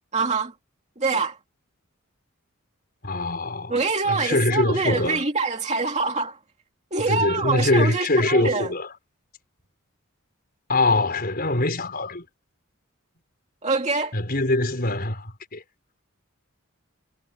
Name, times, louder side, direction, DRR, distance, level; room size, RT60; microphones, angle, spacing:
voice 1, 0.1-0.5 1.0-1.4 3.7-6.4 6.9-8.7 13.6-14.1, right 4 dB, 30° right, 2.5 m, -25 dB
voice 2, 3.0-3.7 4.0-5.2 7.1-8.9 10.7-12.2 14.1-15.6, left 2 dB, 45° left, 5.0 m, -23 dB
head